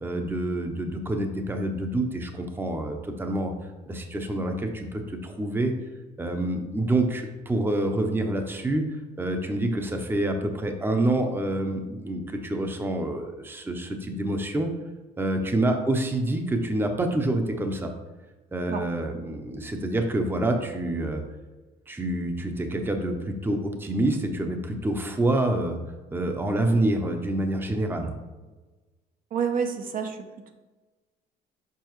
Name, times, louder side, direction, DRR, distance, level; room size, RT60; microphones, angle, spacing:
voice 1, 0.0-3.5 3.9-5.7 6.2-8.9 9.2-14.7 15.2-17.9 18.5-21.2 21.9-25.8 26.1-28.1, right 1 dB, 15° right, 5 dB, 0.7 m, -27 dB
voice 2, 29.3-30.5, right 6 dB, 55° right, 6 dB, 0.8 m, -29 dB
6.9 x 5.1 x 3.1 m, 1.2 s
cardioid pair, 110°, 17 cm